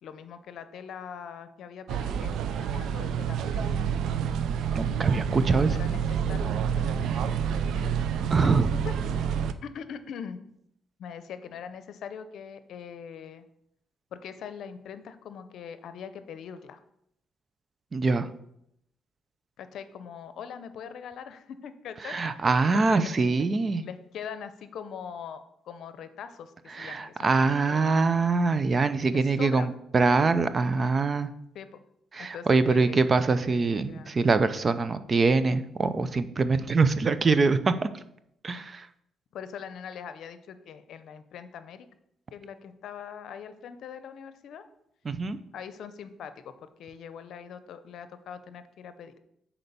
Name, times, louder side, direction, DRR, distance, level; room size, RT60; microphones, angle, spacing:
voice 1, 0.0-3.7 5.7-8.0 8.4-8.6 8.8-9.2 9.6-10.4 11.0-13.4 14.1-16.8 19.6-22.5 22.7-28.2 29.1-29.7 31.5-31.7 32.2-33.1 33.5-34.2 39.3-41.9 42.3-44.6 45.5-49.2, left 7 dB, 70° left, 11 dB, 0.7 m, -42 dB
sound 1, 1.9-9.5, right 7 dB, 80° right, 0.5 m, -28 dB
voice 2, 4.7-5.8 8.3-8.7 17.9-18.3 22.0-23.8 26.7-31.3 32.1-37.9 38.4-38.9 45.0-45.4, right 4 dB, 35° right, 12 dB, 0.6 m, -24 dB
6.8 x 4.4 x 6.8 m, 0.76 s
cardioid pair, 90°, 0 cm